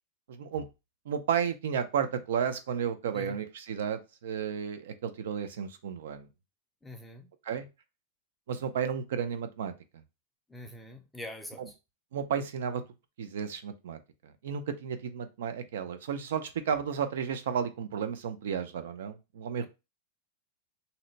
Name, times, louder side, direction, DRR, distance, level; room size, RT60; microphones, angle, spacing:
voice 1, 0.3-0.6 1.1-6.3 7.5-7.7 8.5-9.7 11.6-11.7 12.1-12.8 13.2-14.0 14.4-19.7, right 7 dB, 85° right, 0.5 m, -32 dB
voice 2, 6.8-7.3 10.5-11.6 19.6-19.7, left 1 dB, 5° left, 0.3 m, -44 dB
2.7 x 2.1 x 3.9 m
supercardioid pair, 180°, 0 cm